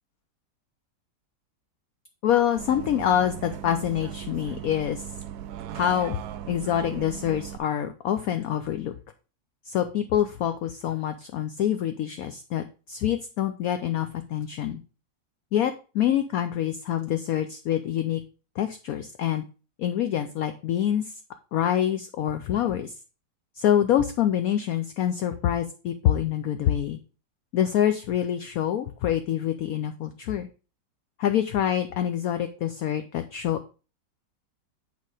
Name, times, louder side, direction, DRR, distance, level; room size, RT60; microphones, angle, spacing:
voice 1, 2.2-5.0 5.7-6.2 6.5-8.9 9.7-14.8 15.5-18.2 18.6-19.4 19.8-21.1 21.5-22.9 23.6-27.0 27.5-30.5 31.2-33.6, left 10 dB, 70° left, 8 dB, 0.9 m, -26 dB
Bus, 2.6-7.6, right 10 dB, 70° right, 1.0 m, -38 dB
8.3 x 4.2 x 4.8 m, 0.35 s
omnidirectional pair, 1.9 m